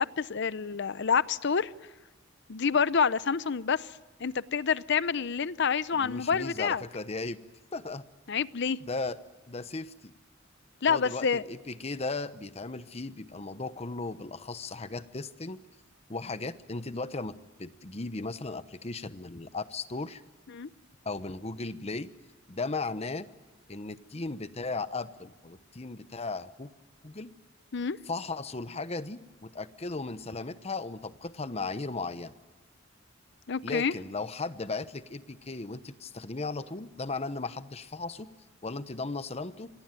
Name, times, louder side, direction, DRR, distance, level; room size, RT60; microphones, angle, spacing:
voice 1, 0.0-1.7 2.5-3.9 4.2-6.8 8.3-8.8 10.8-11.4 20.5-20.7 27.7-28.0 33.5-33.9, left 6 dB, 60° left, 0.7 m, -27 dB
voice 2, 5.9-7.4 7.7-8.0 8.8-9.2 9.5-10.1 10.9-15.6 16.1-17.3 17.6-20.2 21.0-22.1 22.5-23.3 23.7-26.7 27.0-27.3 28.1-32.3 33.6-38.3 38.6-39.7, left 3 dB, 30° left, 1.0 m, -36 dB
25.5 x 19.0 x 9.1 m
head